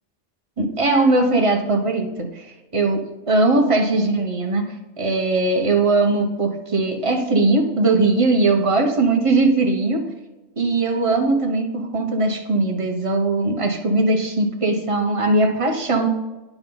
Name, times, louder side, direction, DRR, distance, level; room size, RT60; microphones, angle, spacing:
voice 1, 0.6-2.5 2.7-10.0 10.6-16.1, right 2 dB, 30° right, 3 dB, 0.9 m, -20 dB
9.5 x 6.0 x 3.8 m, 1.1 s
omnidirectional pair, 1.3 m